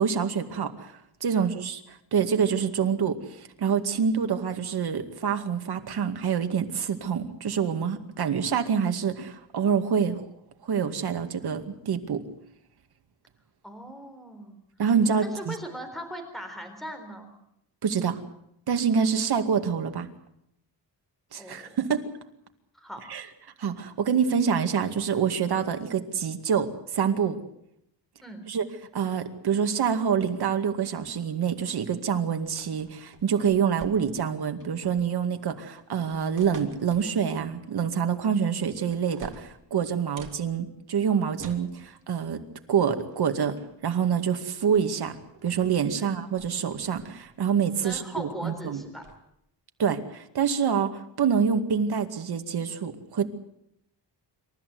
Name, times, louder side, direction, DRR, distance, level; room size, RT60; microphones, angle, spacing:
voice 1, 0.0-10.2 10.6-12.2 14.8-15.6 17.8-18.2 18.7-20.1 21.3-22.1 23.1-23.2 23.6-27.4 28.5-28.6 28.9-42.4 42.7-45.2 45.4-48.8 49.8-53.3, right 7 dB, 60° right, 7 dB, 2.2 m, -26 dB
voice 2, 13.6-14.6 15.2-17.3 21.4-21.7 22.7-23.0 28.2-28.4 46.0-46.2 47.8-49.0, equal, ahead, 4 dB, 4.0 m, -39 dB
sound 1, 32.4-34.3 34.6-35.2 35.8-37.2 38.2-38.6 38.9-40.4 41.4-41.7 43.0-43.2 43.5-43.8 44.7-44.9 45.2-45.7 46.1-47.3 47.9-48.1 48.5-49.2, right 5 dB, 45° right, 3.1 m, -48 dB
27.5 x 14.0 x 9.4 m, 0.77 s
wide cardioid pair, 165°, 43 cm